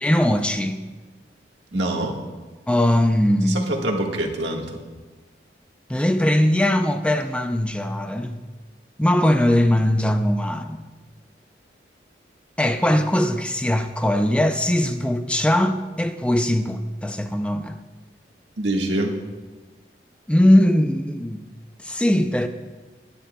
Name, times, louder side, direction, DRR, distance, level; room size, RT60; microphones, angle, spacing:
voice 1, 0.0-0.8 2.7-3.6 5.9-8.4 9.0-10.9 12.6-17.8 20.3-21.5 21.8-22.5, left 1 dB, 5° left, 0.4 m, -20 dB
voice 2, 1.7-2.2 3.5-4.8 18.6-19.2, right 1 dB, 90° right, 1.6 m, -25 dB
22.0 x 10.0 x 2.3 m
head